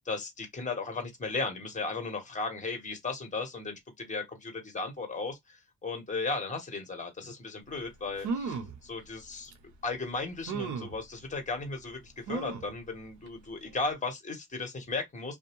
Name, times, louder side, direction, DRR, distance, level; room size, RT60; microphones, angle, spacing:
voice 1, 0.0-9.5 9.8-15.4, left 3 dB, 25° left, 1.4 m, -36 dB
sound 1, 7.8-7.9 8.2-8.8 9.5-9.6 10.5-11.0 12.3-12.7 13.3-13.4 13.7-13.8, right 5 dB, 75° right, 0.8 m, -35 dB
2.6 x 2.1 x 3.0 m
cardioid pair, 90°, 30 cm